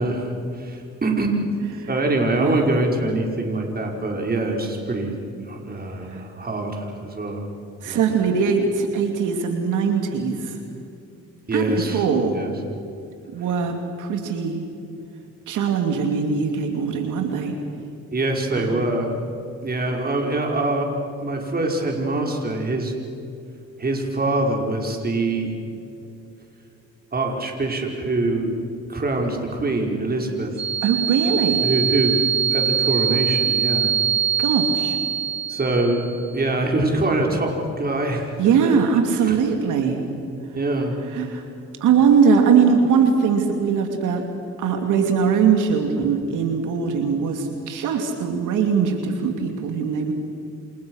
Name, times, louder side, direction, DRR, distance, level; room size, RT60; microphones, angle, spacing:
voice 1, 0.0-1.4 1.9-5.1 5.5-7.4 7.8-8.0 11.5-12.0 12.3-12.5 18.1-19.1 19.6-20.9 21.2-22.9 23.8-25.5 27.1-28.5 28.9-30.6 31.6-33.9 35.5-36.0 36.3-38.3 38.6-38.7 39.2-39.4 40.5-41.0, right 2 dB, 30° right, 1 dB, 5.6 m, -24 dB
voice 2, 7.8-10.6 11.5-12.4 13.3-14.6 15.5-17.6 18.5-18.8 30.8-31.7 34.4-35.0 38.4-40.0 41.1-41.4 41.8-44.2 44.6-50.1, right 6 dB, 85° right, 4 dB, 2.7 m, -21 dB
sound 1, 30.6-36.2, right 8 dB, 60° right, 1.8 m, -23 dB
29.5 x 27.5 x 6.5 m, 2.7 s
cardioid pair, 90°, 30 cm